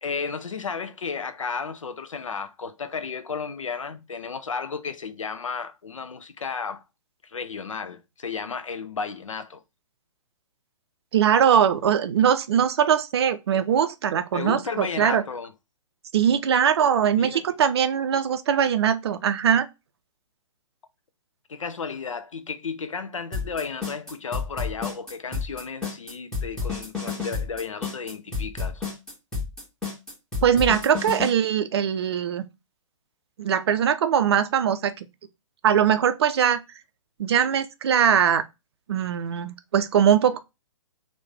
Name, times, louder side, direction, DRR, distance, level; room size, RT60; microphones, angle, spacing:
voice 1, 0.0-6.8 7.2-9.6 14.3-15.5 17.2-17.5 21.5-28.9, left 5 dB, 75° left, 0.5 m, -33 dB
voice 2, 11.1-15.2 16.1-19.7 30.4-32.4 33.4-35.1 35.6-36.6 37.2-38.4 38.9-40.4, right 8 dB, 50° right, 0.4 m, -21 dB
sound 1, 23.3-31.3, left 4 dB, 5° left, 1.1 m, -30 dB
3.1 x 2.2 x 3.3 m
figure-of-eight pair, 120°, 17 cm